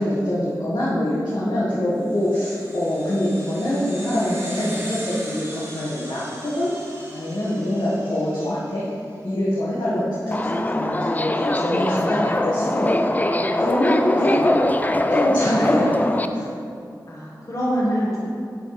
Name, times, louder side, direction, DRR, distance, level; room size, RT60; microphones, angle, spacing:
voice 1, 0.0-6.7 7.1-8.8 9.2-13.1 13.5-14.6 15.1-16.5, left 1 dB, 75° left, -9 dB, 1.2 m, -24 dB
sound 1, 2.1-8.9, equal, 35° right, 1.4 m, -39 dB
voice 2, 7.4-7.9 14.2-14.4 17.1-18.3, equal, 45° left, -7 dB, 1.1 m, -26 dB
Subway metro underground, 10.3-16.3, left 1 dB, 20° left, 0.4 m, -22 dB
11.0 x 4.1 x 3.2 m, 2.5 s
wide cardioid pair, 50°, 8 cm